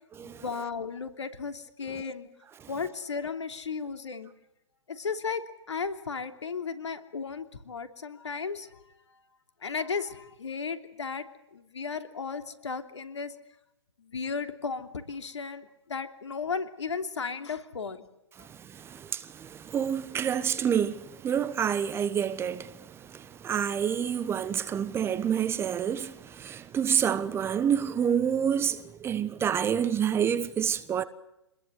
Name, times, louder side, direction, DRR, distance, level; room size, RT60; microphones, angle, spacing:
voice 1, 0.2-2.3 2.7-4.3 4.9-8.8 9.6-11.3 11.5-13.3 14.0-18.0, left 5 dB, 75° left, 3.0 m, -35 dB
voice 2, 18.4-31.0, right 8 dB, 15° right, 1.1 m, -28 dB
26.5 x 21.0 x 8.0 m
figure-of-eight pair, 120°, 15 cm